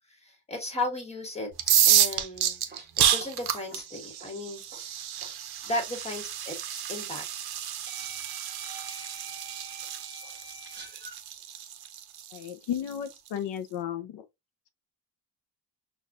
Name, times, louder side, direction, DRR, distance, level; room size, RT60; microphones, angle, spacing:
voice 1, 0.1-1.5 1.8-2.6 3.0-5.0 5.7-7.5, left 2 dB, 15° left, 1.5 m, -35 dB
sound 1, 1.5-13.3, right 10 dB, 65° right, 0.7 m, -29 dB
sound 2, 2.3-5.4 5.6-5.8 6.9-7.0 7.9-11.2, right 3 dB, 25° right, 1.0 m, -47 dB
voice 2, 12.3-14.3, left 9 dB, 75° left, 0.6 m, -34 dB
5.8 x 2.4 x 2.4 m
cardioid pair, 115°, 42 cm